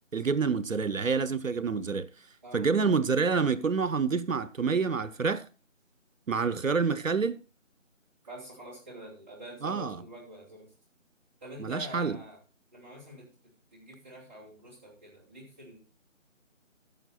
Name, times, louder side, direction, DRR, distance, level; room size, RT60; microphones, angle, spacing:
voice 1, 0.1-2.1 2.5-5.4 6.3-7.4 9.6-10.0 11.6-12.2, right 5 dB, 80° right, 0.9 m, -27 dB
voice 2, 8.3-10.7 11.4-12.4 12.7-13.3 13.7-15.8, right 1 dB, 10° right, 2.8 m, -46 dB
14.5 x 6.6 x 4.2 m
figure-of-eight pair, 170°, 39 cm